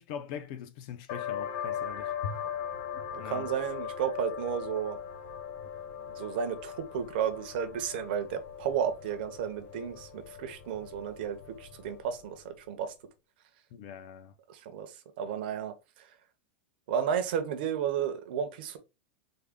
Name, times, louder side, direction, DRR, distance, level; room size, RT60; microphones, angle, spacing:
voice 1, 0.0-2.4 2.9-3.5 13.7-14.3, left 7 dB, 35° left, 0.4 m, -41 dB
sound 1, 1.1-12.4, left 9 dB, 55° left, 1.2 m, -40 dB
voice 2, 3.2-5.0 6.2-12.9 14.5-14.9 15.2-15.7 16.9-18.8, right 8 dB, 50° right, 0.6 m, -33 dB
3.5 x 2.1 x 3.4 m
supercardioid pair, 180°, 7 cm